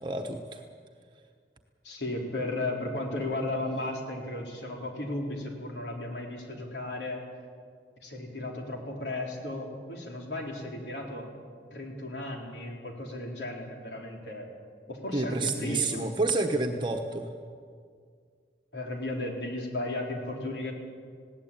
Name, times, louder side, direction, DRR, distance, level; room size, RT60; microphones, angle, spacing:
voice 1, 0.0-0.6 15.1-17.3, right 2 dB, 25° right, 3 dB, 1.1 m, -29 dB
voice 2, 1.8-7.2 8.0-11.3 11.7-14.5 14.9-16.0 18.7-20.7, left 2 dB, 85° left, 1 dB, 3.9 m, -35 dB
20.0 x 17.0 x 8.8 m, 2.1 s
head